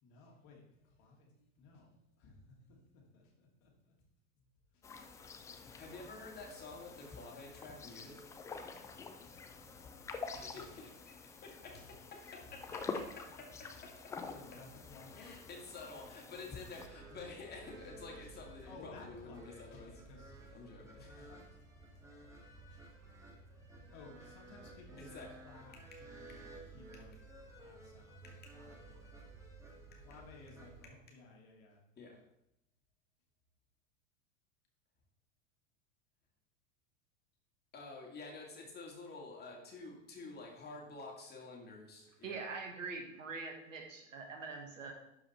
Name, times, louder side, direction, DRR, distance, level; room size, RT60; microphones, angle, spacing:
voice 1, 0.0-3.9 4.7-4.8 8.8-9.0 9.2-10.8 11.3-11.6 12.2-12.3 13.7-13.8 14.3-15.7 16.4-16.5 16.7-16.8 18.2-20.3 20.6-20.9 21.2-22.8 23.4-27.3 27.6-28.3 28.5-29.2 29.9-31.8, left 3 dB, 45° left, -1 dB, 2.6 m, -58 dB
sound 1, 4.8-16.9, left 4 dB, 10° left, 0.3 m, -47 dB
voice 2, 5.6-8.2 10.2-14.1 15.2-19.9 20.5-21.2 25.0-25.3 28.2-28.5 32.0-32.2 37.7-42.5, left 3 dB, 25° left, -1 dB, 2.5 m, -50 dB
sound 2, 16.7-30.9, right 2 dB, 5° right, 2.1 m, -54 dB
voice 3, 42.2-44.9, right 4 dB, 70° right, 3 dB, 1.8 m, -44 dB
12.0 x 4.9 x 4.3 m, 0.82 s
figure-of-eight pair, 85°, 40 cm